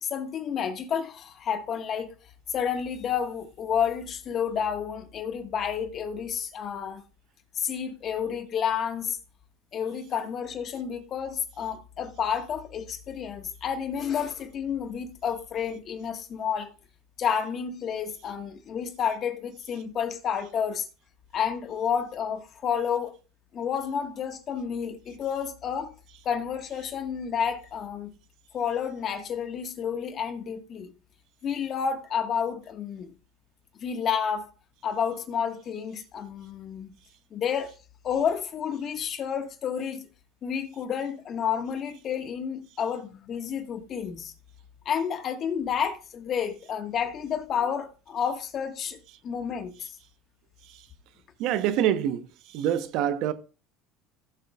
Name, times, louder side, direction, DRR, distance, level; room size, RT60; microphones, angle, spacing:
voice 1, 0.0-2.1 2.5-7.0 7.6-9.2 9.7-16.7 17.2-20.9 21.3-23.2 23.5-26.0 26.3-28.1 28.5-30.9 31.4-33.1 33.8-34.5 34.8-36.9 37.3-37.7 38.0-40.1 40.4-44.3 44.9-49.9, left 7 dB, 45° left, 1.7 m, -30 dB
voice 2, 51.4-52.3 52.5-53.3, right 10 dB, 65° right, 1.0 m, -25 dB
16.0 x 7.6 x 2.4 m
supercardioid pair, 95°, 0 cm